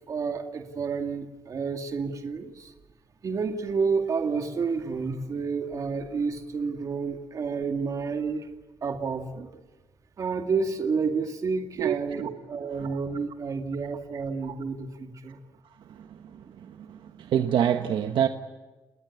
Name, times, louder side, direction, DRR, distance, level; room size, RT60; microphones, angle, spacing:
voice 1, 0.1-2.7 3.2-8.5 8.8-9.5 10.2-12.2 12.5-15.4, right 5 dB, 45° right, 5 dB, 2.4 m, -30 dB
voice 2, 11.8-12.3 12.8-13.0 14.5-14.6 16.7-18.3, right 9 dB, 80° right, 7 dB, 1.3 m, -26 dB
30.0 x 19.5 x 8.5 m, 1.2 s
wide cardioid pair, 165°, 8 cm